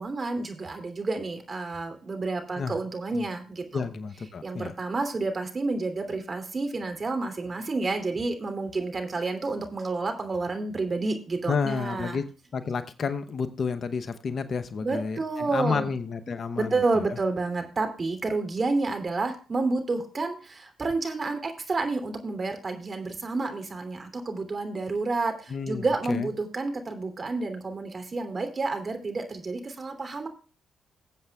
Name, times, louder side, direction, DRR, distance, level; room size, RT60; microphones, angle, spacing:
voice 1, 0.0-3.8 4.4-12.2 14.8-15.9 16.6-30.3, right 3 dB, 40° right, 5 dB, 2.9 m, -30 dB
voice 2, 3.7-4.7 11.5-12.3 12.5-17.1 25.5-26.3, left 5 dB, 55° left, 10 dB, 0.8 m, -30 dB
20.0 x 7.7 x 2.4 m, 0.36 s
hypercardioid pair, 45°, 0 cm